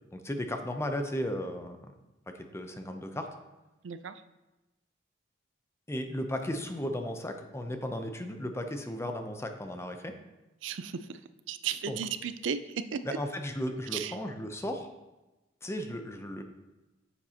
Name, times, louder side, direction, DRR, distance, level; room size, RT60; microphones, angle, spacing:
voice 1, 0.1-1.9 2.3-3.3 5.9-10.1 11.9-12.0 13.0-14.9 15.6-16.4, equal, 15° left, 6 dB, 0.6 m, -35 dB
voice 2, 3.8-4.2 10.6-11.2 11.5-13.0 13.9-14.2, right 7 dB, 80° right, 12 dB, 0.4 m, -35 dB
9.2 x 7.2 x 2.9 m, 1.1 s
head